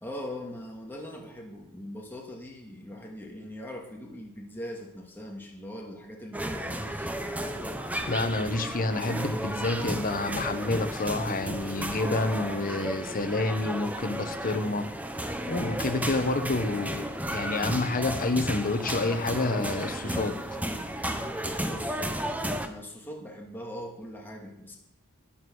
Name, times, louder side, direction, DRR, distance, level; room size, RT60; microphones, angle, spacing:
voice 1, 0.0-7.1 16.0-16.4 21.6-22.1 22.6-24.8, left 1 dB, 10° left, -1 dB, 2.1 m, -41 dB
sound 1, 6.3-22.7, right 1 dB, 5° right, 0.9 m, -33 dB
voice 2, 8.0-14.9 15.5-17.0 17.3-20.3, left 2 dB, 40° left, 7 dB, 1.2 m, -28 dB
12.0 x 9.6 x 6.3 m, 0.77 s
head